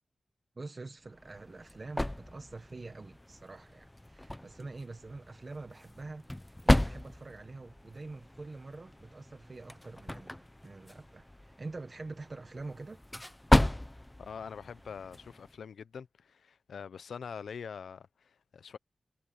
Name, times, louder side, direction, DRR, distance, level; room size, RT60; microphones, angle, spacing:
voice 1, 0.6-13.0, right 3 dB, 30° right, 1.0 m, -46 dB
sound 1, 1.0-15.6, left 1 dB, 10° left, 0.6 m, -34 dB
voice 2, 14.2-18.8, left 6 dB, 85° left, 0.6 m, -44 dB
wide cardioid pair, 170°, 0 cm